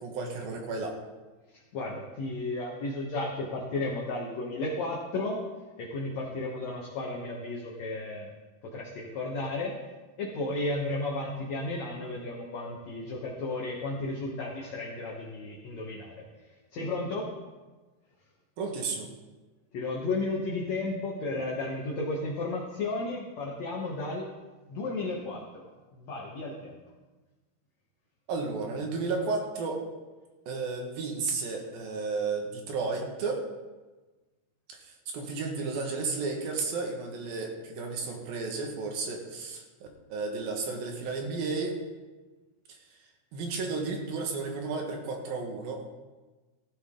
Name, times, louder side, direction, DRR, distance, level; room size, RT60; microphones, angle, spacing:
voice 1, 0.0-1.0 18.6-19.1 28.3-29.8 30.5-33.4 34.8-41.7 43.3-45.8, right 4 dB, 65° right, 1 dB, 3.3 m, -33 dB
voice 2, 1.7-5.4 5.8-8.3 8.6-9.8 10.2-16.2 16.7-17.3 19.7-24.3 24.7-26.8, left 2 dB, 60° left, -2 dB, 2.0 m, -33 dB
15.5 x 11.5 x 3.8 m, 1.2 s
omnidirectional pair, 4.7 m